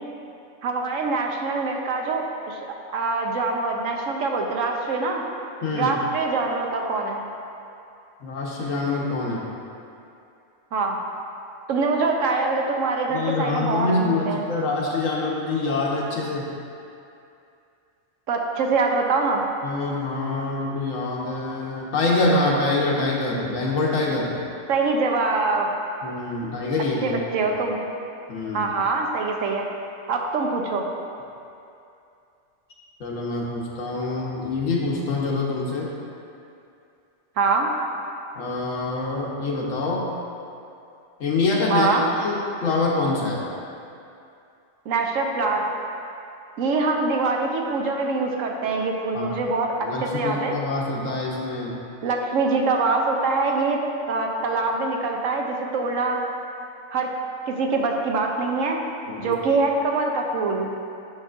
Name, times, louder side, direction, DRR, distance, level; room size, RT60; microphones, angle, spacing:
voice 1, 0.6-2.6 2.9-5.2 5.7-7.2 10.7-11.0 11.7-14.5 18.3-19.4 24.7-25.7 26.4-26.5 27.0-27.8 28.5-29.7 30.1-30.9 37.4-37.7 41.7-42.1 44.9-45.6 46.6-49.7 50.0-50.6 52.0-53.8 54.1-56.2 56.9-57.1 57.5-58.8 59.2-60.8, right 3 dB, 85° right, 1 dB, 1.1 m, -24 dB
voice 2, 5.6-5.9 8.2-9.5 13.1-16.4 19.6-24.3 26.0-27.5 28.3-28.7 33.0-35.9 38.4-40.0 41.2-41.9 42.2-42.4 42.6-43.4 49.1-49.3 49.8-51.8 59.1-59.3, left 3 dB, 90° left, -3 dB, 1.4 m, -25 dB
9.5 x 6.4 x 2.5 m, 2.6 s
omnidirectional pair, 1.3 m